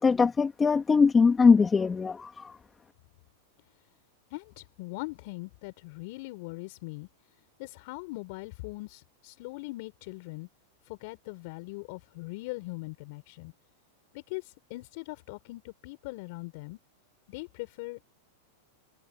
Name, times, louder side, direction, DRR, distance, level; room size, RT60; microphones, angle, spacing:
voice 1, 0.0-2.6, left 5 dB, 15° left, 2.7 m, -22 dB
voice 2, 4.3-7.1 7.6-10.5 10.9-13.5 14.1-16.8 17.3-18.1, left 24 dB, 60° left, 5.1 m, -41 dB
hypercardioid pair, 105°, 0 cm